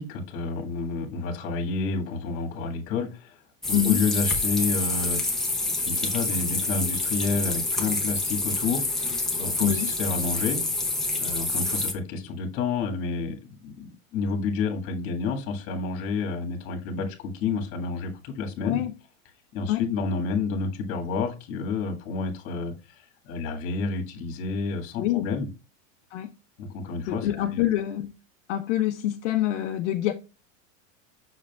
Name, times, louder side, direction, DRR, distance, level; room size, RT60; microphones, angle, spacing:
voice 1, 0.0-3.4 3.7-5.2 5.7-10.6 11.2-18.8 19.5-25.5 26.6-27.6, left 4 dB, 35° left, 1.7 m, -30 dB
sound 1, 3.6-11.9, left 2 dB, ahead, 0.8 m, -27 dB
voice 2, 3.7-4.0 9.6-9.9 18.6-18.9 19.7-19.8 25.0-25.3 26.1-26.3 27.1-28.1 28.5-30.1, left 12 dB, 65° left, 0.8 m, -26 dB
7.2 x 6.4 x 2.3 m
supercardioid pair, 155°, 38 cm